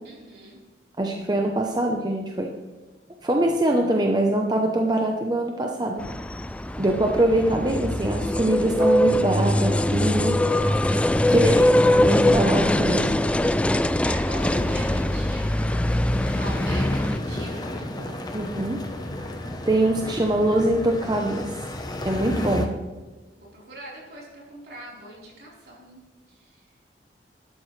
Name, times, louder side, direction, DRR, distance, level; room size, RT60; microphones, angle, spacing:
voice 1, 0.0-0.6 14.0-15.6 15.9-18.2 22.3-22.6 23.4-26.7, right 1 dB, 65° right, -5 dB, 4.2 m, -43 dB
voice 2, 1.0-2.5 3.2-6.0 6.8-10.3 11.3-13.1 18.3-18.8 19.7-21.5 22.0-22.7, right 1 dB, 25° right, 1 dB, 0.8 m, -23 dB
sound 1, 6.0-17.2, left 1 dB, 5° left, 0.3 m, -22 dB
sound 2, 14.4-22.7, left 1 dB, 25° left, 0.9 m, -32 dB
13.0 x 12.0 x 3.3 m, 1.2 s
head